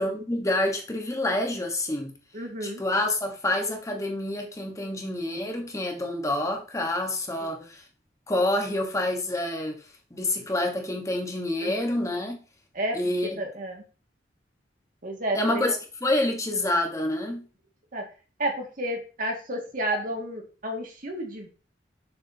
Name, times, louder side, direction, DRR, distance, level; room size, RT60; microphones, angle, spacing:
voice 1, 0.0-2.1 2.6-7.8 8.3-9.8 10.1-12.4 12.9-13.4 15.3-17.4, left 1 dB, 20° left, 1.3 m, -27 dB
voice 2, 2.3-2.8 7.4-7.7 11.6-11.8 12.7-13.0 13.4-13.8 15.0-15.8 17.9-18.0 18.4-21.5, right 1 dB, 50° right, 2.0 m, -31 dB
6.9 x 6.3 x 2.8 m
head